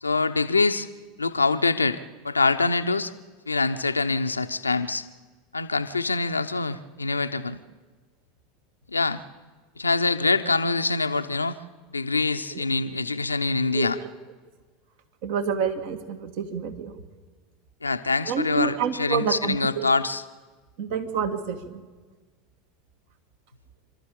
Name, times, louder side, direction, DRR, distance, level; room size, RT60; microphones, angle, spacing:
voice 1, 0.0-0.9 1.2-3.1 3.5-5.0 5.5-7.6 8.9-9.2 9.8-11.6 11.9-14.0 17.8-20.2, left 3 dB, 85° left, 10 dB, 0.8 m, -25 dB
voice 2, 15.2-16.9 18.3-19.8 20.8-21.6, right 6 dB, 55° right, 7 dB, 1.9 m, -28 dB
27.5 x 13.0 x 8.6 m, 1.4 s
figure-of-eight pair, 80°, 0 cm